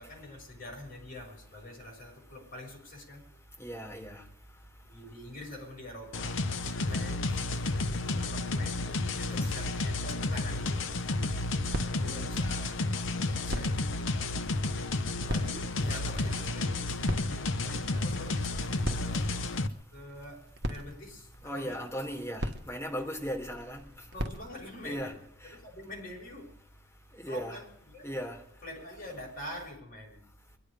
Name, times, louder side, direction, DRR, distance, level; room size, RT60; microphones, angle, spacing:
voice 1, 0.0-3.2 4.8-6.5 6.7-7.7 8.0-11.0 12.0-12.8 13.2-14.0 15.1-16.9 17.2-19.3 19.9-21.8 24.1-25.1 25.4-26.6 27.3-28.1 28.6-30.6, left 1 dB, 45° left, -1 dB, 6.3 m, -46 dB
voice 2, 3.6-4.7 11.3-12.5 17.6-17.7 21.4-24.1 24.8-25.1 25.4-25.6 27.1-27.6 28.0-28.4, equal, 15° left, 0 dB, 3.7 m, -38 dB
sound 1, 6.1-19.7, left 2 dB, 70° left, 0.9 m, -31 dB
sound 2, 10.5-25.0, equal, 55° right, 1.5 m, -41 dB
23.0 x 12.0 x 5.1 m, 0.72 s
head